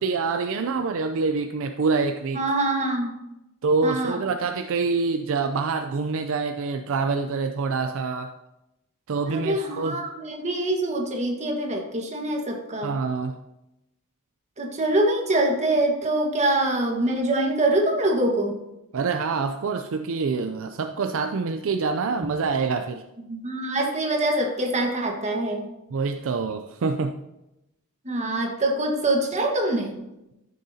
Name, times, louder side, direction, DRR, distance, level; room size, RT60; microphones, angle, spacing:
voice 1, 0.0-2.4 3.6-8.3 9.1-10.0 12.8-13.4 18.9-23.0 25.9-27.2, right 4 dB, 60° right, 7 dB, 0.4 m, -26 dB
voice 2, 2.3-3.1 3.8-4.2 9.2-13.0 14.6-18.6 23.3-25.7 28.0-30.0, right 1 dB, 30° right, 1 dB, 1.5 m, -24 dB
13.5 x 6.5 x 2.8 m, 0.92 s
head